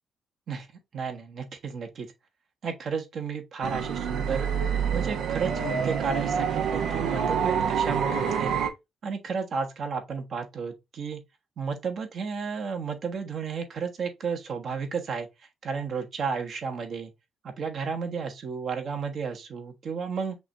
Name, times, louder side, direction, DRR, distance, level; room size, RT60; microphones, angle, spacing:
voice 1, 0.9-2.1 2.6-4.5 4.9-8.5 9.0-11.2 11.6-15.3 15.6-17.1 17.4-20.4, right 5 dB, 60° right, 1.3 m, -32 dB
sound 1, 3.6-8.7, right 7 dB, 80° right, 0.9 m, -27 dB
5.9 x 2.6 x 3.2 m
cardioid pair, 90°, 0 cm